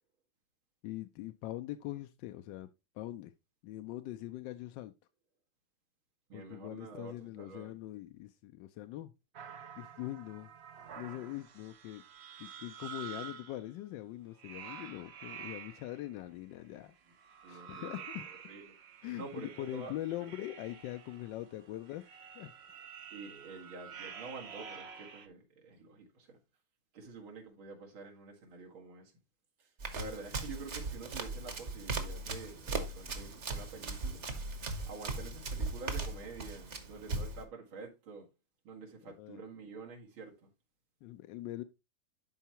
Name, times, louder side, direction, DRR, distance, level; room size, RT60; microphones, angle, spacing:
voice 1, 0.8-2.7 2.9-3.3 3.6-4.9 6.3-9.1 9.8-10.5 11.0-12.0 12.4-16.9 17.5-18.3 19.0-22.0 22.3-22.5 39.0-39.4 41.0-41.6, left 14 dB, 75° left, 1.1 m, -42 dB
voice 2, 6.3-7.8 17.4-18.7 19.2-19.9 23.1-26.4 26.9-29.1 29.6-34.3 34.9-38.3 38.6-40.5, right 4 dB, 90° right, 2.7 m, -48 dB
sound 1, 9.3-13.6 14.3-16.1 17.1-25.3, right 7 dB, 65° right, 0.6 m, -49 dB
Run, 29.8-37.4, right 3 dB, 45° right, 1.2 m, -38 dB
11.5 x 4.6 x 2.9 m
omnidirectional pair, 2.2 m